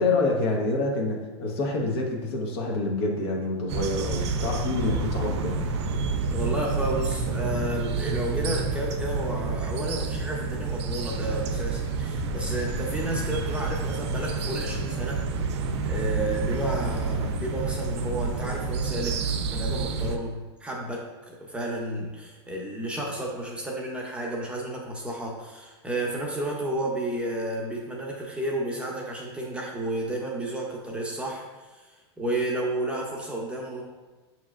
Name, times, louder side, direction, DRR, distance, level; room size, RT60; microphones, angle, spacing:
voice 1, 0.0-5.6, left 2 dB, 65° left, 0 dB, 1.0 m, -27 dB
sound 1, 3.7-20.2, right 4 dB, 75° right, 0.5 m, -29 dB
voice 2, 6.3-15.2 15.9-33.8, right 1 dB, 10° right, -2 dB, 0.6 m, -32 dB
6.4 x 2.9 x 2.4 m, 1.2 s
supercardioid pair, 130°, 14 cm